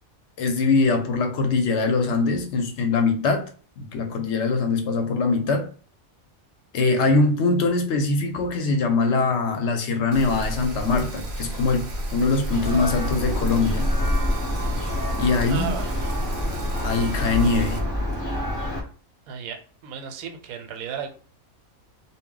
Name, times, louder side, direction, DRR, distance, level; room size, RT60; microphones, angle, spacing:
voice 1, 0.4-3.4 3.8-5.7 6.7-13.9 15.2-15.7 16.8-17.8, left 3 dB, 65° left, 0.8 m, -22 dB
Rain, 10.1-17.8, right 1 dB, 50° right, 0.7 m, -32 dB
Church bell, 12.5-18.8, left 1 dB, 20° left, 0.6 m, -27 dB
voice 2, 15.5-15.9 19.3-19.6 19.8-21.1, right 8 dB, 90° right, 1.0 m, -34 dB
2.3 x 2.0 x 3.6 m
omnidirectional pair, 1.4 m